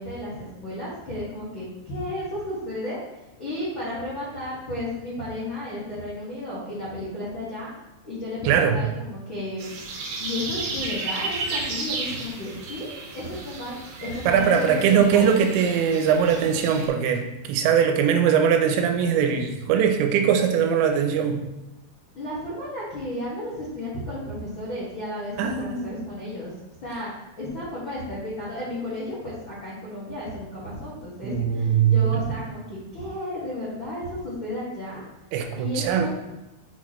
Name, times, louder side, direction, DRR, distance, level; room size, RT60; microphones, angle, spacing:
voice 1, 0.0-7.7 8.0-9.7 10.2-12.9 13.1-15.3 22.1-26.5 26.8-27.1 27.4-35.0 35.5-36.1, left 1 dB, 80° left, -10 dB, 1.1 m, -33 dB
voice 2, 8.4-8.8 14.3-21.4 25.4-26.0 31.2-32.1 35.3-36.1, right 7 dB, 85° right, 5 dB, 2.9 m, -21 dB
sound 1, 9.6-16.9, right 3 dB, 70° right, 2.4 m, -33 dB
8.5 x 4.2 x 3.1 m, 1.0 s
omnidirectional pair, 5.3 m